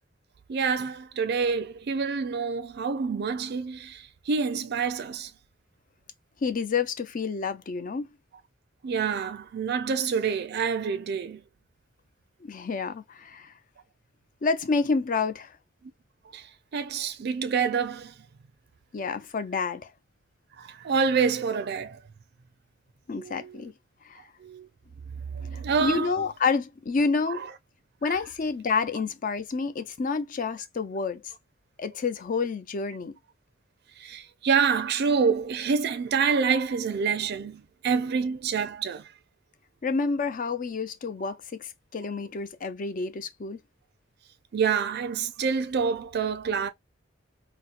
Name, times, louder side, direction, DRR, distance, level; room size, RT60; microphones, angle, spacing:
voice 1, 0.5-5.3 8.8-11.4 16.3-18.1 20.6-22.0 23.1-23.7 24.2-24.7 25.3-26.1 27.3-27.5 28.1-28.2 34.0-39.1 44.5-46.7, right 5 dB, 55° right, 0.4 m, -27 dB
voice 2, 6.4-8.1 12.4-13.5 14.4-15.5 18.9-19.9 23.1-23.7 24.1-24.2 25.8-27.5 28.0-31.2 31.8-33.1 39.8-43.6, left 4 dB, 45° left, 0.5 m, -29 dB
4.1 x 2.1 x 2.4 m
head